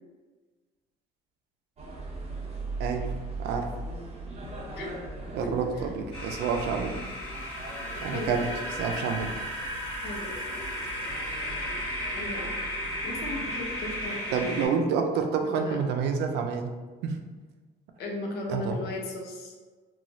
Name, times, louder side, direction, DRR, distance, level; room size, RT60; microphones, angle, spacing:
sound 1, 1.8-14.2, right 2 dB, 40° right, 0.8 m, -40 dB
voice 1, 2.8-3.1 3.4-3.7 5.3-6.9 8.0-8.5 8.8-9.3 14.3-16.7 17.0-17.2 18.5-18.8, right 5 dB, 85° right, 4 dB, 0.4 m, -28 dB
voice 2, 5.4-5.9 7.7-8.6 9.9-10.6 12.1-12.6 13.0-14.8 15.4-15.8 18.0-19.5, left 2 dB, 75° left, 1 dB, 0.7 m, -37 dB
sound 2, 6.1-14.7, equal, 30° left, 1.2 m, -35 dB
3.0 x 2.3 x 2.6 m, 1.4 s
cardioid pair, 110°, 17 cm